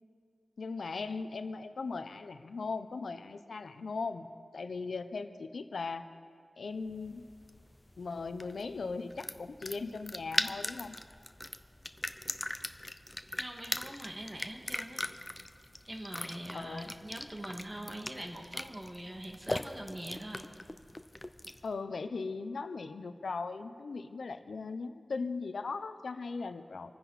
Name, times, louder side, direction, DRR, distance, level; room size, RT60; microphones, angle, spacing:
voice 1, 0.6-6.1 6.6-7.2 8.0-11.0 16.5-17.0 21.6-26.9, left 4 dB, 85° left, 10 dB, 0.7 m, -38 dB
sound 1, 6.9-21.7, left 1 dB, 20° left, 0.7 m, -40 dB
voice 2, 13.3-15.0 15.9-20.5, right 1 dB, 25° right, 2 dB, 2.2 m, -43 dB
27.0 x 10.0 x 4.2 m, 2.1 s
wide cardioid pair, 75°, 0 cm